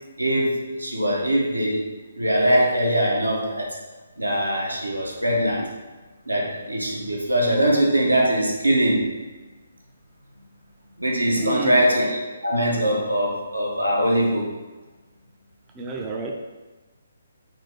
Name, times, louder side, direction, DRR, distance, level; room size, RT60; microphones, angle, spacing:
voice 1, 0.2-1.9 2.1-3.8 4.2-5.7 6.3-9.1 11.0-14.5, right 1 dB, 80° right, -1 dB, 0.8 m, -22 dB
voice 2, 11.3-11.8 15.8-16.3, right 2 dB, 15° right, 0 dB, 0.3 m, -30 dB
3.9 x 2.7 x 3.5 m, 1.2 s
figure-of-eight pair, 135°, 0 cm